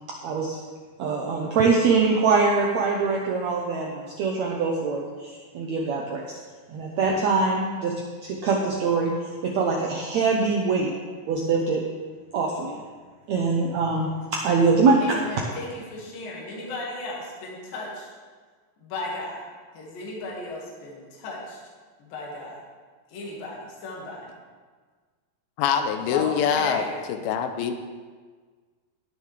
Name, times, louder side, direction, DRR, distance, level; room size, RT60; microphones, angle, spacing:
voice 1, 0.1-0.6 1.0-6.4 6.7-7.9 8.2-9.1 9.4-10.9 11.3-11.8 12.3-12.8 13.3-15.2, right 4 dB, 85° right, -1 dB, 1.5 m, -23 dB
voice 2, 15.0-18.1 18.8-19.4 19.7-21.6 22.0-22.6 23.1-24.3 26.1-27.0, left 2 dB, 65° left, -3 dB, 3.5 m, -35 dB
voice 3, 25.6-26.8 27.1-27.7, left 8 dB, 85° left, 7 dB, 2.4 m, -24 dB
18.5 x 6.7 x 3.3 m, 1.5 s
omnidirectional pair, 4.4 m